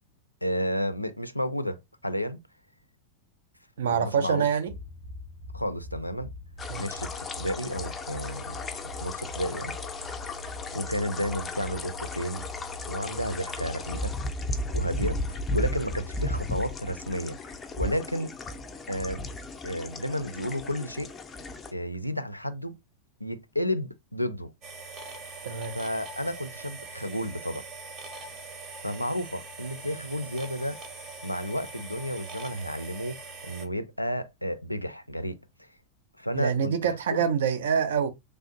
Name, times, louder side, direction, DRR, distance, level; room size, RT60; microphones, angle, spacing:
voice 1, 0.4-2.4 3.8-4.5 5.5-6.3 6.8-9.7 10.7-12.4 12.9-14.2 14.7-17.4 17.8-18.3 18.9-19.2 19.6-21.1 21.7-22.8 23.2-24.5 25.7-27.6 28.8-30.8 31.2-35.7 36.2-36.7 37.1-37.2, equal, 90° left, 0.3 m, -32 dB
voice 2, 3.8-4.7 6.7-6.9 25.4-25.8 36.3-38.1, right 7 dB, 60° right, 0.5 m, -26 dB
sound 1, 4.7-18.0, left 1 dB, 80° right, 2.0 m, -43 dB
sound 2, 6.6-21.7, left 1 dB, 20° left, 0.5 m, -35 dB
sound 3, 24.6-33.7, right 3 dB, 35° right, 0.8 m, -42 dB
3.3 x 2.5 x 2.6 m
figure-of-eight pair, 90°, 0 cm